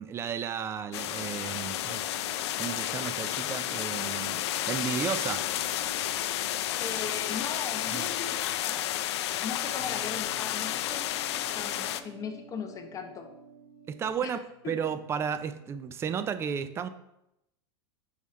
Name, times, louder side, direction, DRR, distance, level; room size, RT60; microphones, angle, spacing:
voice 1, 0.0-2.0 2.6-4.4 4.7-5.4 7.9-8.1 13.9-14.4 14.6-16.9, right 7 dB, 20° right, 11 dB, 0.3 m, -33 dB
sound 1, 0.8-14.1, right 4 dB, 70° right, 1.3 m, -52 dB
sound 2, 0.9-12.0, left 13 dB, 70° left, 0.4 m, -31 dB
voice 2, 6.8-9.0 9.4-11.0 11.5-13.3 14.2-14.4 14.6-14.7, left 6 dB, 25° left, 5 dB, 0.8 m, -38 dB
Bass guitar, 9.8-16.0, left 4 dB, 10° left, 1.2 m, -55 dB
6.2 x 3.7 x 4.2 m, 0.85 s
supercardioid pair, 130°, 15 cm